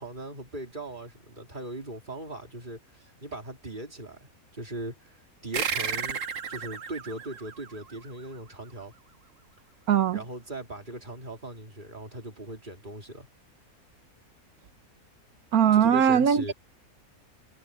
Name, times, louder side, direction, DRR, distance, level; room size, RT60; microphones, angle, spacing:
voice 1, 0.0-6.2 6.5-8.9 10.1-13.3 15.7-16.5, right 1 dB, 35° right, 3.4 m, -39 dB
sound 1, 5.5-8.5, right 6 dB, 60° right, 1.7 m, -33 dB
voice 2, 9.9-10.2 15.5-16.5, right 8 dB, 90° right, 1.5 m, -20 dB
omnidirectional pair, 1.5 m